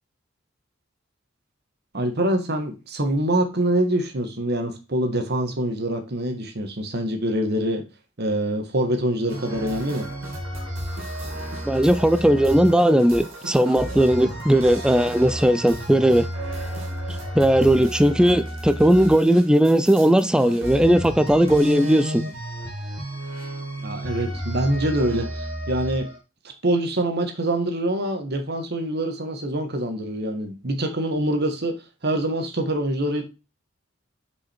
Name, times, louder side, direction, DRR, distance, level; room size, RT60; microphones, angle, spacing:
voice 1, 1.9-7.8 8.2-10.1 23.8-26.1 26.6-31.8 32.0-33.2, right 1 dB, 55° right, 1.4 m, -25 dB
sound 1, 9.3-26.2, right 1 dB, 85° right, 2.2 m, -32 dB
voice 2, 11.7-16.3 17.3-22.2, right 1 dB, 5° right, 0.3 m, -18 dB
6.0 x 5.0 x 4.3 m
head